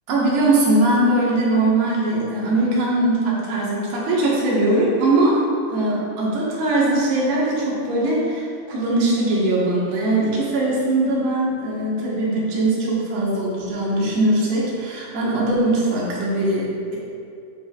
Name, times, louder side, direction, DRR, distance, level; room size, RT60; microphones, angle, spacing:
voice 1, 0.1-5.4 5.7-17.0, right 2 dB, 75° right, -6 dB, 3.6 m, -21 dB
10.0 x 7.3 x 2.5 m, 2.5 s
omnidirectional pair, 4.9 m